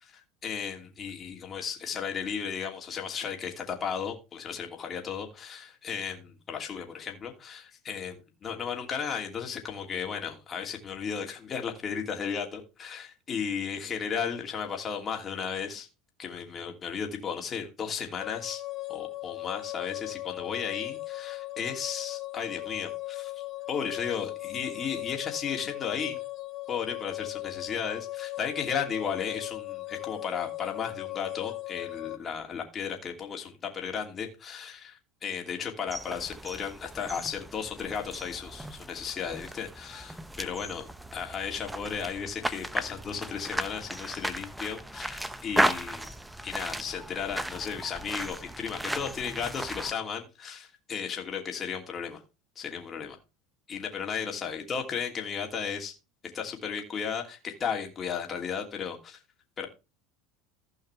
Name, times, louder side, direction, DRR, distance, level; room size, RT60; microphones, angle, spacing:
voice 1, 0.0-15.9 16.2-18.6 18.9-26.2 26.7-40.9 41.1-46.1 46.4-52.2 52.6-53.2 53.7-55.9 56.3-59.2 59.6-59.7, left 7 dB, 35° left, 3 dB, 2.8 m, -35 dB
sound 1, 18.2-32.2, left 19 dB, 50° left, 0.9 m, -38 dB
sound 2, 35.9-49.9, right 1 dB, 5° right, 0.9 m, -35 dB
15.5 x 5.6 x 3.4 m, 0.28 s
hypercardioid pair, 95°, 0 cm